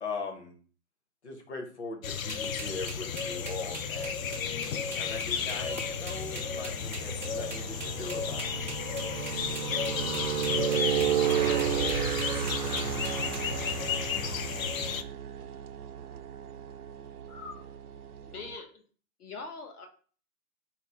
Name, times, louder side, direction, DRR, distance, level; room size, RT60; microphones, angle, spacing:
voice 1, 0.0-0.5 1.2-4.3 5.0-8.5, left 4 dB, 50° left, 2 dB, 1.0 m, -40 dB
sound 1, 2.0-15.0, left 7 dB, 65° left, 0.5 m, -33 dB
sound 2, 2.3-13.4, right 3 dB, 35° right, 0.4 m, -42 dB
sound 3, 3.0-18.6, right 9 dB, 85° right, 0.6 m, -34 dB
voice 2, 10.9-14.8, right 1 dB, 25° left, -3 dB, 0.6 m, -49 dB
voice 3, 17.3-17.7 18.2-18.8 19.2-19.9, left 4 dB, 80° left, 4 dB, 1.0 m, -42 dB
4.1 x 2.0 x 4.3 m, 0.41 s
hypercardioid pair, 175°, 44 cm